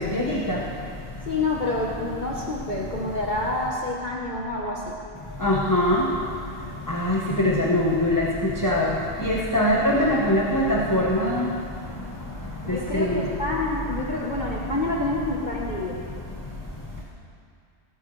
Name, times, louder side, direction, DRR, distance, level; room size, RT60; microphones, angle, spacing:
voice 1, 1.3-5.0 12.6-16.0, left 2 dB, 40° left, -3 dB, 1.2 m, -28 dB
voice 2, 5.4-6.0 6.9-8.3 8.6-8.9 9.2-11.3 13.1-13.2, left 1 dB, 15° left, -3 dB, 1.0 m, -21 dB
19.0 x 12.5 x 3.2 m, 2.4 s
omnidirectional pair, 1.3 m